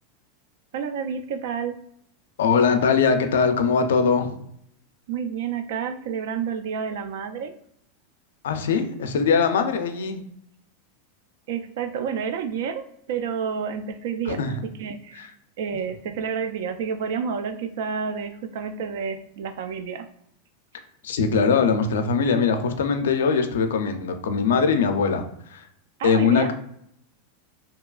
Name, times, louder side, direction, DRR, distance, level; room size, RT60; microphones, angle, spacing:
voice 1, 0.7-1.8 5.1-7.5 11.5-15.3 15.6-20.1 26.0-26.5, right 6 dB, 70° right, 9 dB, 0.3 m, -30 dB
voice 2, 2.4-4.4 8.4-10.2 14.3-14.6 15.2-15.3 21.0-25.2 25.5-25.6 26.0-26.5, left 5 dB, 90° left, 7 dB, 0.3 m, -21 dB
2.7 x 2.3 x 2.3 m, 0.72 s
supercardioid pair, 135°, 0 cm